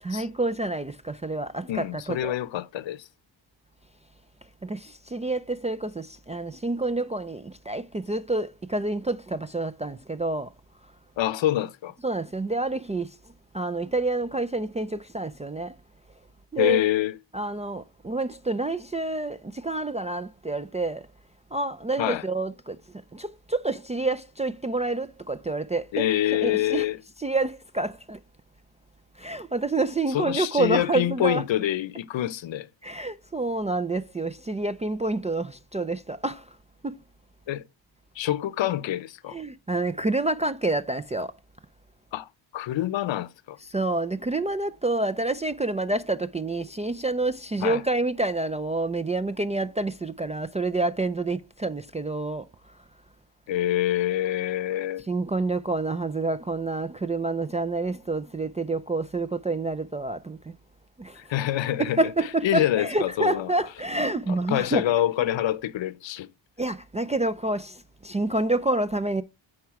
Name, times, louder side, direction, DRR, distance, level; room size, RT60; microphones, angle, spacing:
voice 1, 0.0-2.4 4.6-10.5 12.0-13.2 13.5-15.8 16.5-16.8 17.3-21.1 21.5-22.8 23.1-26.1 26.4-26.8 27.2-28.2 29.2-31.4 32.8-36.6 36.8-36.9 39.3-41.3 43.6-52.5 55.1-60.5 61.0-61.2 61.8-64.9 66.6-69.2, right 2 dB, 15° right, 0.3 m, -28 dB
voice 2, 1.7-3.1 11.2-11.9 16.6-17.2 22.0-22.2 25.9-27.0 30.1-32.7 37.5-37.6 38.2-39.4 42.1-42.3 42.5-43.6 47.6-47.8 53.5-55.0 61.2-62.0 62.4-63.5 64.3-66.3, left 12 dB, 65° left, 0.8 m, -26 dB
8.7 x 4.8 x 4.5 m
cardioid pair, 80°, 48 cm